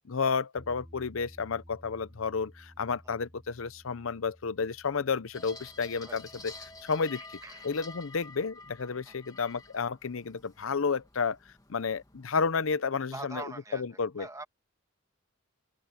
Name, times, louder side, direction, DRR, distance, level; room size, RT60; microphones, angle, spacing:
voice 1, 0.1-6.5 6.8-7.2 7.6-11.4 11.7-13.4 13.7-14.3, left 5 dB, 70° left, 0.7 m, -31 dB
Bass guitar, 0.6-6.8, equal, ahead, 3.8 m, -55 dB
sound 1, 5.3-12.8, left 3 dB, 20° left, 1.9 m, -50 dB
voice 2, 7.1-7.7 9.1-9.2 13.1-13.8 14.2-14.4, right 2 dB, 15° right, 1.5 m, -43 dB
open air
head